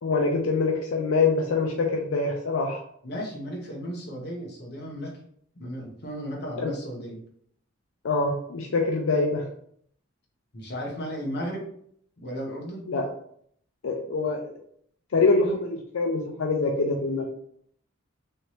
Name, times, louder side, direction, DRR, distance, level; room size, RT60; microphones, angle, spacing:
voice 1, 0.0-2.8 6.6-6.7 8.0-9.5 12.9-13.0 13.8-14.4 15.1-17.3, left 3 dB, 85° left, 1 dB, 0.5 m, -24 dB
voice 2, 3.0-5.1 5.5-7.2 10.5-11.7 12.2-12.9, equal, 55° left, -1 dB, 0.9 m, -35 dB
3.3 x 3.0 x 2.8 m, 0.65 s
head